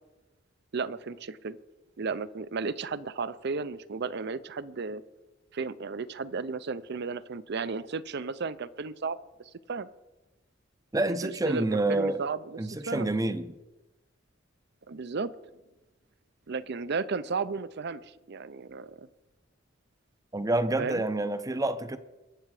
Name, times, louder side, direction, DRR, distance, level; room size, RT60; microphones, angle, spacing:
voice 1, 0.7-1.6 2.0-5.0 5.5-9.2 9.7-9.9 11.0-13.2 14.9-15.3 16.5-19.1 20.8-21.0, right 4 dB, 60° right, 0.6 m, -34 dB
voice 2, 10.9-12.2 12.6-13.5 20.3-22.0, right 2 dB, 20° right, 0.6 m, -28 dB
22.5 x 8.0 x 4.9 m
head